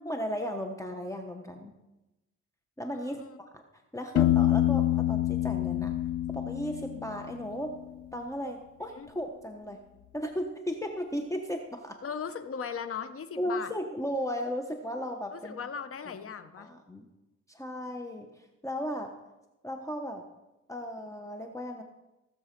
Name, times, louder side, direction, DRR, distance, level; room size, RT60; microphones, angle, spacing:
voice 1, 0.0-1.7 2.8-3.6 3.9-5.9 6.3-7.8 8.1-9.8 10.1-12.0 13.4-15.6 16.6-17.1 17.5-19.1 19.6-20.2 20.7-21.8, equal, 10° left, 4 dB, 1.1 m, -35 dB
voice 2, 2.9-3.4 8.9-9.1 12.0-13.7 15.3-16.7, left 6 dB, 45° left, 10 dB, 1.1 m, -38 dB
Piano, 4.2-7.9, left 13 dB, 70° left, 0.6 m, -27 dB
16.5 x 7.2 x 5.3 m, 0.99 s
cardioid pair, 90°, 30 cm